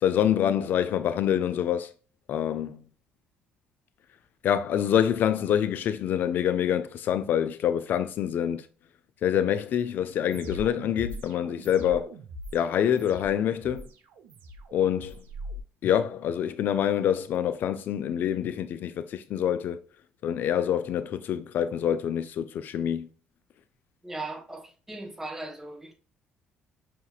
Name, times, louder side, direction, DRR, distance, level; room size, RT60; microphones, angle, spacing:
voice 1, 0.0-1.9 2.3-2.8 4.4-8.7 9.2-12.1 12.5-13.9 14.7-15.2 15.8-19.8 20.2-23.1, left 9 dB, 60° left, 0.3 m, -26 dB
sound 1, 10.3-15.6, equal, 70° right, 0.8 m, -42 dB
voice 2, 24.0-25.9, right 2 dB, 10° right, 1.2 m, -38 dB
5.7 x 2.9 x 2.3 m
cardioid pair, 90°, 4 cm